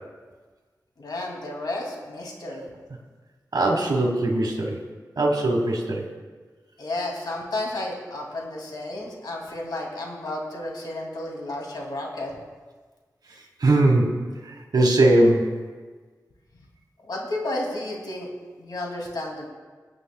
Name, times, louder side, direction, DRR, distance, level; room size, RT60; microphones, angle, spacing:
voice 1, 1.0-2.7 6.8-12.3 17.0-18.3 18.6-19.5, left 1 dB, 85° left, -1 dB, 2.5 m, -32 dB
voice 2, 3.5-4.8 5.2-6.0 13.6-14.1 14.4-15.5, right 2 dB, 80° right, 0 dB, 1.4 m, -20 dB
20.5 x 8.8 x 2.3 m, 1.4 s
cardioid pair, 45°, 7 cm